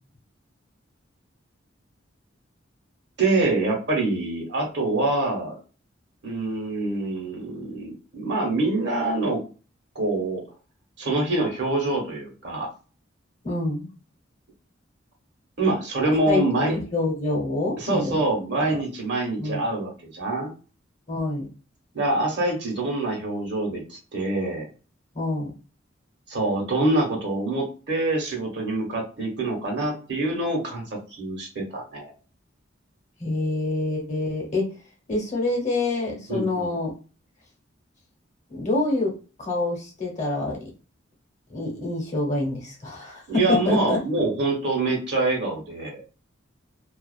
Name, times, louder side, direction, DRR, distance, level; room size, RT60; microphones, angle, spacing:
voice 1, 3.2-5.6 6.2-9.4 9.9-10.4 11.0-12.7 15.6-16.7 17.8-20.5 21.9-24.7 26.3-30.8 31.1-32.1 36.3-36.7 43.3-46.0, right 2 dB, 60° right, -1 dB, 1.0 m, -25 dB
voice 2, 13.4-13.9 16.3-18.2 18.7-18.8 19.4-19.6 21.1-21.5 25.1-25.5 33.2-34.7 35.1-36.9 38.5-39.1 39.4-40.7 41.5-44.0, left 2 dB, 40° left, -1 dB, 0.9 m, -26 dB
2.4 x 2.3 x 2.3 m, 0.34 s
head